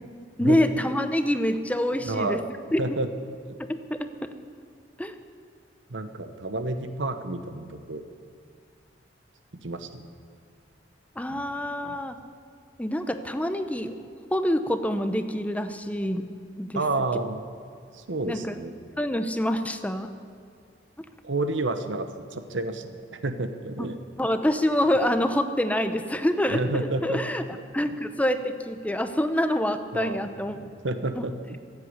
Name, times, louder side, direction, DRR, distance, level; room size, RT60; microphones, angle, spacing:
voice 1, 0.4-2.4 2.7-3.0 3.7-4.3 5.0-5.1 11.2-12.2 12.8-14.0 14.3-16.2 16.6-16.8 18.3-18.6 19.0-20.1 21.0-21.1 24.2-27.4 27.7-30.6 31.2-31.3, left 1 dB, 10° left, 9 dB, 0.7 m, -26 dB
voice 2, 2.0-2.4 2.8-3.1 5.9-8.0 9.6-10.1 11.3-11.6 11.9-12.0 16.7-17.4 17.9-18.7 21.2-24.0 26.5-27.2 27.5-27.6 27.9-28.0 29.9-31.6, right 2 dB, 90° right, 9 dB, 1.1 m, -30 dB
15.5 x 8.4 x 9.7 m, 2.4 s
head